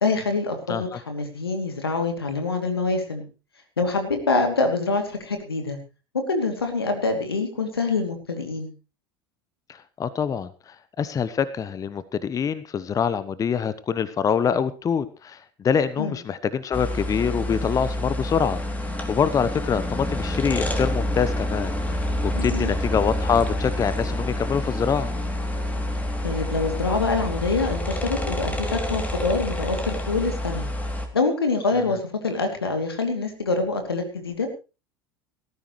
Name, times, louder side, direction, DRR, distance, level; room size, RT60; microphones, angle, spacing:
voice 1, 0.0-3.2 3.8-5.8 6.3-8.7 16.0-16.2 22.3-22.7 26.2-30.7 31.1-34.5, left 3 dB, 85° left, 5 dB, 2.7 m, -25 dB
voice 2, 9.7-25.1, left 7 dB, 30° left, 15 dB, 0.9 m, -25 dB
sound 1, 16.7-31.1, left 1 dB, 10° left, 2.9 m, -28 dB
17.5 x 14.0 x 3.1 m, 0.31 s
figure-of-eight pair, 70°, 12 cm